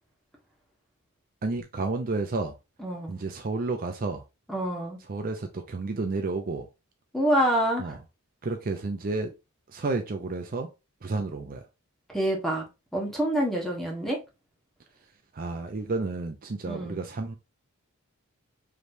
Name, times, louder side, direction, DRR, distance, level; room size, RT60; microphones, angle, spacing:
voice 1, 1.4-2.6 3.1-4.2 5.1-6.7 7.8-8.0 8.4-9.3 9.7-10.7 11.0-11.6 15.3-17.3, right 3 dB, 45° right, 0.5 m, -31 dB
voice 2, 2.8-3.2 4.5-5.0 7.1-7.9 12.1-12.7 12.9-14.2 16.7-17.0, equal, ahead, 1.5 m, -27 dB
5.0 x 3.2 x 2.7 m
head